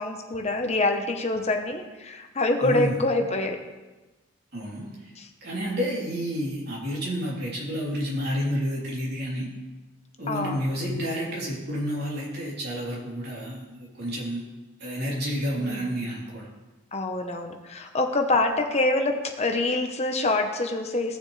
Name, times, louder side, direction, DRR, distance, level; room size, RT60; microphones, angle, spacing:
voice 1, 0.0-3.6 5.2-5.3 10.3-10.6 15.6-15.9 16.9-21.2, left 2 dB, 30° left, 4 dB, 0.9 m, -26 dB
voice 2, 2.6-3.0 4.5-5.1 5.4-9.5 10.2-14.4 14.8-16.5, equal, 50° right, -5 dB, 3.3 m, -30 dB
17.0 x 7.0 x 3.3 m, 1.2 s
head